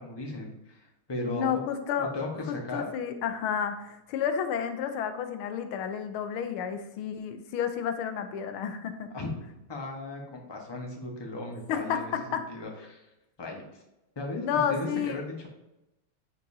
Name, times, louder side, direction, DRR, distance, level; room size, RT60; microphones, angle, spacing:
voice 1, 0.0-1.6 2.0-2.9 9.1-9.3 9.7-13.0 13.4-13.6 14.1-15.5, left 2 dB, 15° left, 0 dB, 1.0 m, -36 dB
voice 2, 1.3-2.1 2.5-9.1 11.7-12.0 12.3-12.4 14.4-15.2, left 8 dB, 90° left, 8 dB, 1.6 m, -31 dB
9.9 x 5.2 x 2.8 m, 0.93 s
omnidirectional pair, 2.3 m